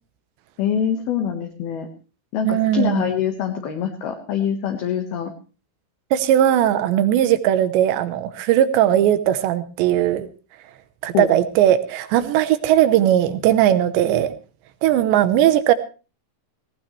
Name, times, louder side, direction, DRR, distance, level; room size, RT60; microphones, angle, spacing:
voice 1, 0.6-1.9 2.3-5.3 11.1-11.3, left 8 dB, 60° left, 4 dB, 3.0 m, -24 dB
voice 2, 2.5-3.1 6.1-10.3 11.0-14.3 14.8-15.7, right 11 dB, 75° right, 12 dB, 3.0 m, -18 dB
18.5 x 18.0 x 3.3 m, 0.34 s
omnidirectional pair, 5.7 m